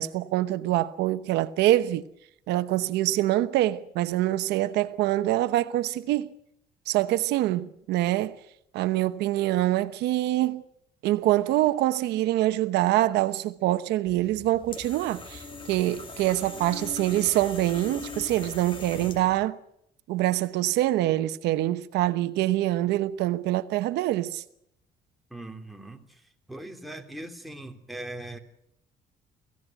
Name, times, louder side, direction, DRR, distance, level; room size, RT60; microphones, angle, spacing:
voice 1, 0.0-2.0 2.5-6.3 6.9-8.4 8.7-10.6 11.0-19.6 20.1-24.4, right 15 dB, 85° right, 1.0 m, -25 dB
sound 1, 14.1-19.4, left 3 dB, 30° left, 3.1 m, -41 dB
voice 2, 25.3-26.2 26.5-28.4, right 1 dB, ahead, 3.1 m, -40 dB
25.0 x 16.0 x 9.1 m
cardioid pair, 110°, 17 cm